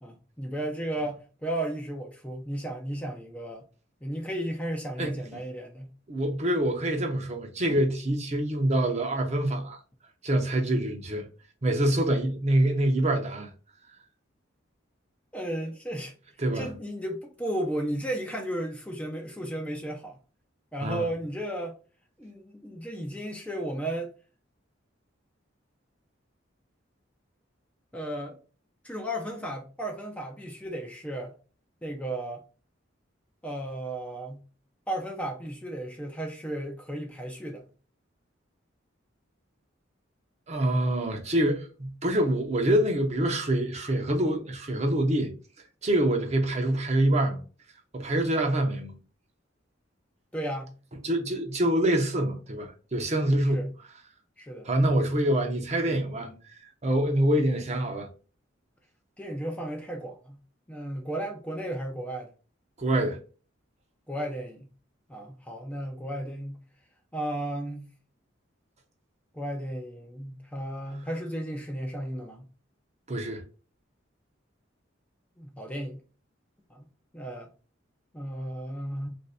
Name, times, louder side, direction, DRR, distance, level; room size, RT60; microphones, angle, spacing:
voice 1, 0.0-3.6 4.0-5.9 15.3-16.1 16.5-20.2 20.7-21.8 22.2-24.1 27.9-28.4 28.8-31.3 31.8-32.4 33.4-34.4 34.9-37.6 50.3-50.7 53.5-53.7 54.4-54.7 56.2-56.3 59.2-60.4 60.7-62.3 64.1-64.7 65.1-66.6 67.1-67.9 69.3-72.5 75.4-76.0 76.7-76.8 77.1-77.5 78.1-79.1, right 1 dB, 5° left, 0.5 m, -34 dB
voice 2, 6.1-9.8 10.2-11.3 11.6-13.5 16.4-16.7 20.8-21.0 40.5-45.3 45.8-47.4 47.9-48.9 51.0-53.7 54.6-56.3 56.8-58.1 62.8-63.2 73.1-73.4, right 1 dB, 35° right, 0.7 m, -25 dB
3.2 x 2.6 x 3.3 m
head